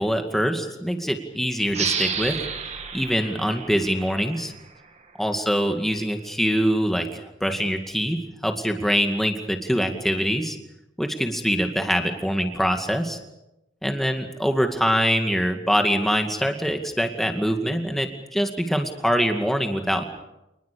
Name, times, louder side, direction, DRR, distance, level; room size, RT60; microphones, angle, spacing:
voice 1, 0.0-2.4 2.9-4.5 5.2-8.2 8.4-10.6 11.0-13.2 13.8-20.0, equal, ahead, 5 dB, 2.2 m, -24 dB
sound 1, 1.7-5.0, right 6 dB, 35° right, 2.1 m, -31 dB
27.5 x 20.5 x 6.9 m, 0.93 s
head